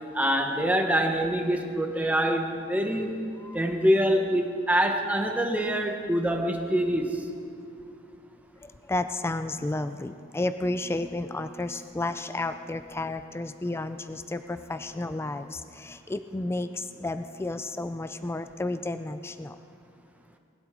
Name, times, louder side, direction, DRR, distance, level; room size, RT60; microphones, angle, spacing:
voice 1, 0.1-3.1 3.5-7.2, equal, 10° right, 3 dB, 1.0 m, -25 dB
voice 2, 8.9-19.5, left 2 dB, 10° left, 10 dB, 0.3 m, -32 dB
20.0 x 12.0 x 3.7 m, 2.4 s
head